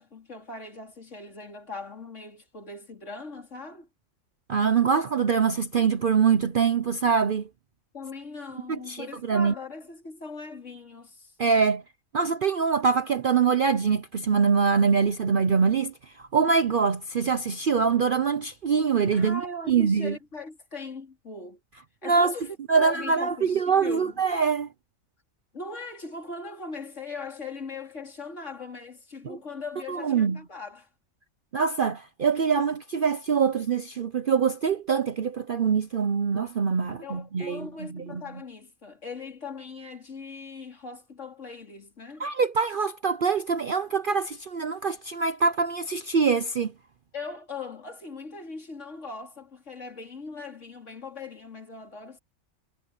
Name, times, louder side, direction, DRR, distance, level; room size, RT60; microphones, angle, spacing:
voice 1, 0.0-3.9 7.9-11.3 19.1-21.6 22.0-24.2 25.5-30.9 37.0-42.3 47.1-52.2, left 3 dB, 60° left, 3.9 m, -40 dB
voice 2, 4.5-7.5 8.7-9.5 11.4-11.8 12.1-19.4 19.7-20.2 22.0-22.3 22.7-24.7 29.2-29.4 29.9-30.4 31.5-38.2 42.2-46.7, right 6 dB, 50° right, 0.8 m, -24 dB
omnidirectional pair, 1.4 m